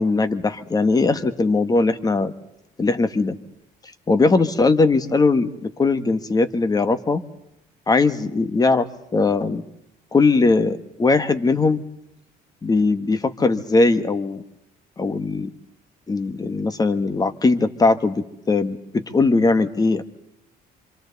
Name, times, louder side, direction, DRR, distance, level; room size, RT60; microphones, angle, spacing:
voice 1, 0.0-2.3 2.8-3.4 4.1-7.2 7.9-8.9 9.1-9.6 10.1-11.8 12.6-14.4 15.0-15.5 16.1-20.0, left 3 dB, 20° left, 10 dB, 1.5 m, -20 dB
27.0 x 26.5 x 4.1 m, 0.82 s
cardioid pair, 110°, 17 cm